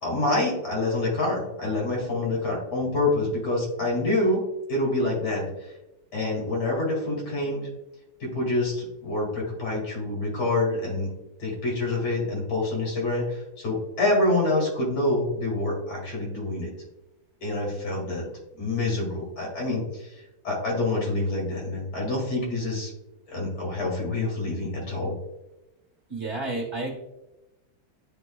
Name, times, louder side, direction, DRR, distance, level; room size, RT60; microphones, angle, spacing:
voice 1, 0.0-4.4 4.7-5.7 6.1-7.7 8.2-11.1 11.4-16.7 17.4-18.3 18.6-22.9 23.3-25.2, left 2 dB, 70° left, -2 dB, 2.8 m, -27 dB
voice 2, 26.1-26.9, right 2 dB, 40° right, 0 dB, 1.5 m, -30 dB
11.0 x 4.1 x 2.3 m, 0.96 s
omnidirectional pair, 1.9 m